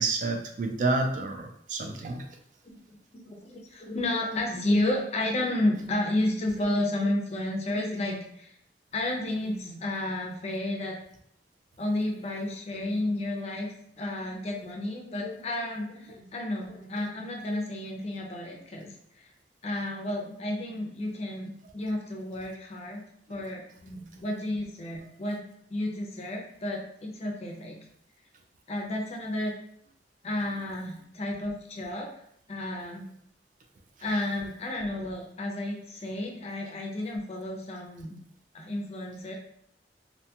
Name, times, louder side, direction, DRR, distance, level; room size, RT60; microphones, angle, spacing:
voice 1, 0.0-2.2, right 3 dB, 45° right, 4 dB, 0.3 m, -29 dB
voice 2, 3.2-8.5 8.9-11.0 11.8-13.7 14.0-18.9 19.2-19.3 19.6-23.0 23.3-25.4 25.7-27.8 28.7-29.5 30.2-32.1 32.5-33.0 34.0-38.2 38.5-39.3, left 1 dB, 35° left, 1 dB, 0.4 m, -31 dB
2.6 x 2.2 x 2.8 m, 0.69 s
head